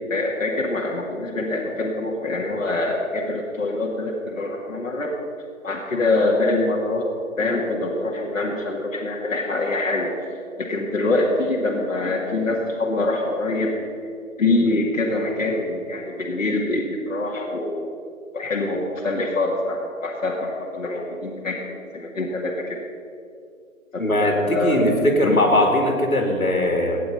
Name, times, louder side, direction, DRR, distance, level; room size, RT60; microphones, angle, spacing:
voice 1, 0.1-5.1 5.6-7.1 7.4-10.1 10.6-13.7 14.4-17.9 18.3-22.8 23.9-24.9 25.2-25.4, left 2 dB, 65° left, -3 dB, 2.1 m, -24 dB
voice 2, 24.0-27.0, left 1 dB, 85° left, 2 dB, 2.8 m, -20 dB
15.5 x 10.0 x 5.5 m, 2.4 s
figure-of-eight pair, 140°, 41 cm